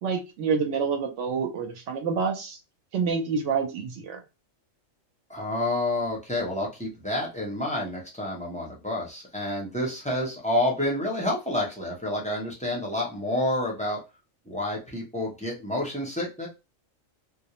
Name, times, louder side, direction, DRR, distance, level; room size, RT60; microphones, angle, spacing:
voice 1, 0.0-2.6 2.9-4.2, right 5 dB, 70° right, 5 dB, 0.9 m, -27 dB
voice 2, 5.3-14.0 14.5-16.5, left 1 dB, 10° left, -3 dB, 0.4 m, -29 dB
2.3 x 2.0 x 2.9 m, 0.27 s
omnidirectional pair, 1.4 m